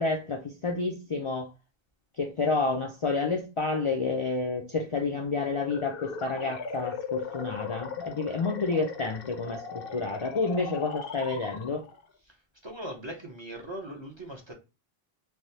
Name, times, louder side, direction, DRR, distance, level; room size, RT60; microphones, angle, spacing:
voice 1, 0.0-1.5 2.2-11.8, left 3 dB, 50° left, 0.4 m, -29 dB
sound 1, 5.6-12.0, left 5 dB, 70° left, 0.8 m, -38 dB
voice 2, 12.6-14.5, right 1 dB, 35° right, 0.5 m, -40 dB
3.3 x 2.0 x 2.7 m
omnidirectional pair, 1.0 m